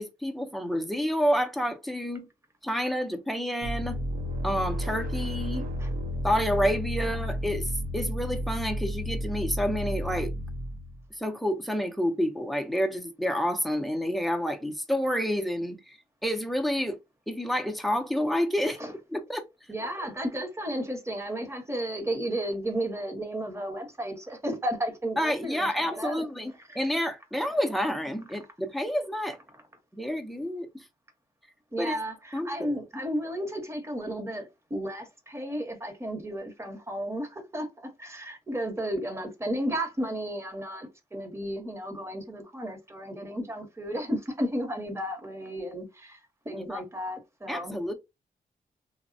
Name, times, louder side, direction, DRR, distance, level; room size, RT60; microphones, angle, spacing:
voice 1, 0.0-2.3 2.6-4.0 4.4-5.7 6.2-10.3 11.2-16.0 16.2-17.0 17.3-18.8 19.1-19.4 25.2-29.4 29.9-30.8 31.8-31.9 32.3-32.8 46.7-46.8 47.5-47.9, equal, ahead, 0.5 m, -29 dB
sound 1, 3.6-11.0, equal, 75° right, 0.6 m, -32 dB
voice 2, 19.7-26.3 26.7-26.8 31.7-46.2 46.4-47.8, equal, 20° right, 0.9 m, -33 dB
3.2 x 2.0 x 2.6 m
cardioid pair, 105°, 15 cm